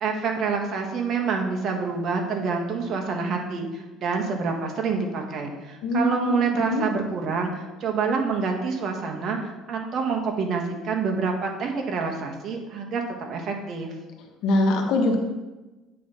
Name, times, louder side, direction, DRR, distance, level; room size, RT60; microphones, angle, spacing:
voice 1, 0.0-13.0 13.3-13.9, right 5 dB, 50° right, 2 dB, 1.4 m, -27 dB
voice 2, 5.8-6.8 14.4-15.2, left 2 dB, 70° left, 3 dB, 1.2 m, -23 dB
8.4 x 4.0 x 5.7 m, 1.1 s
supercardioid pair, 105°, 0 cm